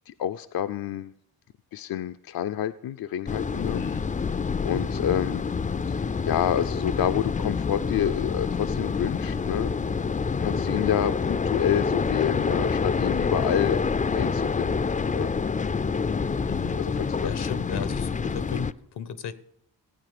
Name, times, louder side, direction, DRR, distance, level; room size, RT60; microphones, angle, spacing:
voice 1, 0.1-1.1 1.7-3.8 4.6-5.5 5.9-9.7 10.4-13.8 14.1-15.3 16.8-17.2, left 10 dB, 65° left, 10 dB, 0.6 m, -28 dB
sound 1, 3.3-18.7, left 5 dB, 20° left, 0.4 m, -27 dB
voice 2, 3.6-4.1 16.4-16.8 17.2-19.3, left 7 dB, 85° left, 15 dB, 1.0 m, -35 dB
16.0 x 8.9 x 6.8 m, 0.71 s
cardioid pair, 85°, 38 cm